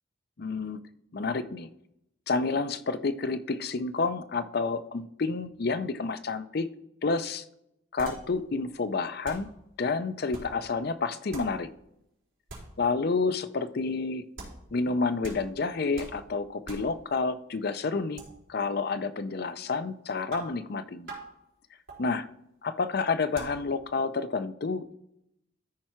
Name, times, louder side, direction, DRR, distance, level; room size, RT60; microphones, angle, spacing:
voice 1, 0.4-0.8 1.1-1.7 2.3-6.7 7.0-7.4 7.9-9.5 9.8-11.7 12.8-14.3 14.7-18.2 18.5-21.2 22.0-22.3 22.6-24.9, left 4 dB, 50° left, 12 dB, 0.5 m, -29 dB
sound 1, 8.0-8.5 8.8-8.9 9.2-9.6 10.3-10.7 11.3-11.7 12.5-12.8 14.4-14.7 15.2-15.6 16.0-16.3 16.7-17.0 18.2-18.3 20.3-20.7 21.1-21.3 21.9-22.1 23.3-23.7, right 2 dB, 75° right, 3.9 m, -43 dB
13.5 x 4.6 x 4.4 m, 0.80 s
head